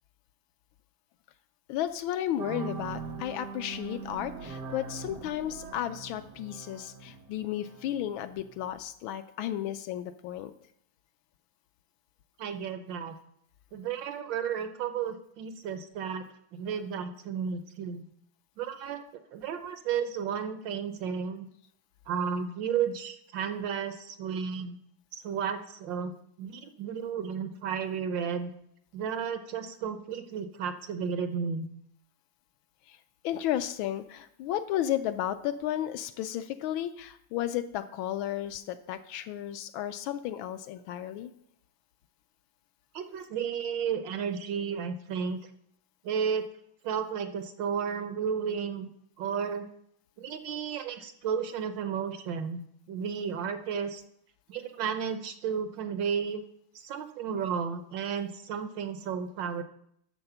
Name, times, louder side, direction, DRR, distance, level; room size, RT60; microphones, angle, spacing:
voice 1, 1.7-10.5 33.2-41.3, left 12 dB, 75° left, 11 dB, 1.3 m, -33 dB
sound 1, 2.4-8.7, right 4 dB, 90° right, 2.1 m, -41 dB
voice 2, 12.4-13.1 13.7-16.2 16.5-18.0 18.6-19.0 19.3-21.5 22.1-24.8 25.2-26.1 26.4-28.5 28.9-31.7 42.9-45.4 46.0-46.4 46.8-48.9 49.2-49.7 50.2-52.6 52.9-54.0 54.5-56.4 56.7-59.6, right 7 dB, 70° right, 9 dB, 1.2 m, -33 dB
11.5 x 4.2 x 6.7 m, 0.72 s
omnidirectional pair, 2.4 m